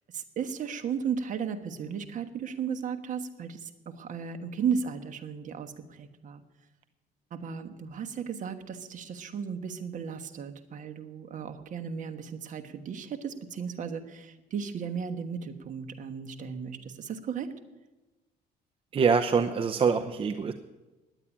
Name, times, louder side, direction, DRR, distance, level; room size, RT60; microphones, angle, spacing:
voice 1, 0.1-6.4 7.3-17.5, right 7 dB, 50° right, 7 dB, 1.3 m, -35 dB
voice 2, 18.9-20.5, right 5 dB, 35° right, 8 dB, 0.7 m, -24 dB
10.0 x 8.9 x 9.8 m, 1.1 s
cardioid pair, 110°, 17 cm